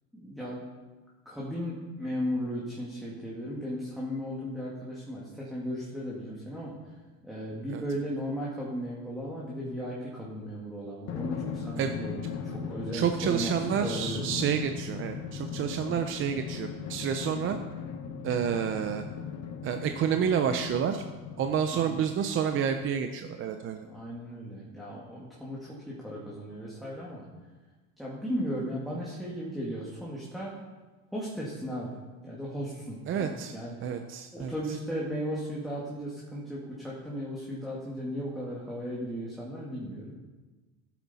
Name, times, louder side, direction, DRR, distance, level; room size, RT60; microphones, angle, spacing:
voice 1, 0.1-0.7 1.2-6.8 7.2-13.6 13.8-14.3 21.9-22.0 23.9-27.3 28.0-30.5 31.1-34.0 34.3-40.1, equal, ahead, -6 dB, 1.8 m, -36 dB
Drum, 11.1-22.1, left 6 dB, 40° left, 1.2 m, -38 dB
voice 2, 12.9-17.6 18.2-19.0 19.6-21.0 21.4-23.8 33.1-33.5 33.8-34.5, right 8 dB, 35° right, 6 dB, 0.6 m, -29 dB
14.5 x 8.5 x 4.1 m, 1.3 s
cardioid pair, 150°, 39 cm